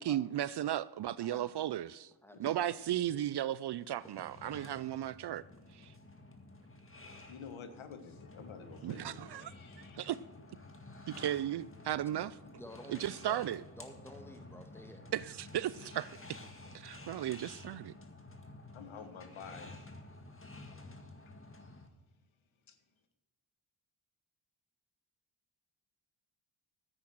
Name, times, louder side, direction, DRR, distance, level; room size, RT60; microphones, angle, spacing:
voice 1, 0.0-2.1 2.4-5.4 5.7-5.9 8.8-9.5 10.0-10.2 11.1-12.4 12.9-13.6 15.1-16.4 16.7-17.9, right 12 dB, 55° right, 0.5 m, -35 dB
voice 2, 1.2-1.5 2.2-2.8 12.6-13.5 13.8-15.1, equal, 5° left, 1.8 m, -51 dB
sound 1, 3.8-21.9, left 2 dB, 25° left, 1.8 m, -52 dB
voice 3, 7.3-10.0 18.7-19.8 21.2-21.3 21.6-21.8 22.7-22.8, left 6 dB, 75° left, 1.4 m, -50 dB
10.0 x 8.7 x 6.1 m
cardioid pair, 50°, 49 cm